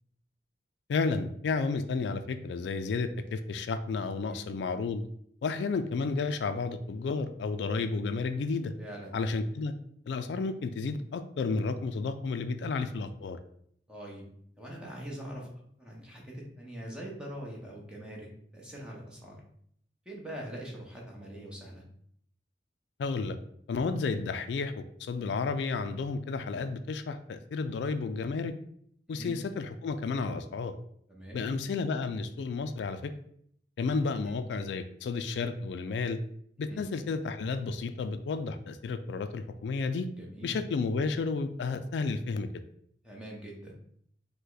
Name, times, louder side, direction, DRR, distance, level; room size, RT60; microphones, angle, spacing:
voice 1, 0.9-5.0 5.4-8.7 9.1-9.7 10.1-13.4 23.0-23.4 23.7-28.5 29.1-30.7 31.3-33.1 33.8-36.2 36.6-40.1 40.4-42.5, left 4 dB, 75° left, 10 dB, 0.3 m, -32 dB
voice 2, 8.8-9.2 13.9-14.2 14.5-15.5 15.8-19.4 20.0-21.8 29.1-29.4 31.1-31.5 34.1-34.3 36.7-36.8 40.2-40.6 43.0-43.8, right 1 dB, 5° right, -3 dB, 0.9 m, -43 dB
5.2 x 2.2 x 3.9 m, 0.67 s
head